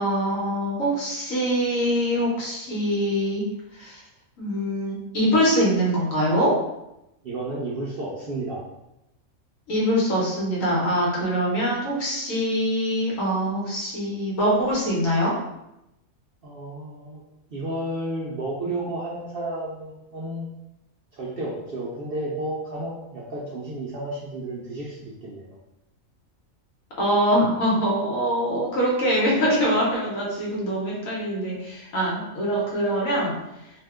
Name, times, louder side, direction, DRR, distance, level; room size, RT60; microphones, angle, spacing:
voice 1, 0.0-3.4 3.8-4.0 4.4-6.5 9.7-15.3 27.0-33.3, equal, 70° left, -4 dB, 1.3 m, -23 dB
voice 2, 7.2-8.6 16.4-17.2 17.5-20.5 21.2-25.4, right 1 dB, 60° right, -6 dB, 0.6 m, -32 dB
2.8 x 2.2 x 3.5 m, 0.88 s
omnidirectional pair, 1.5 m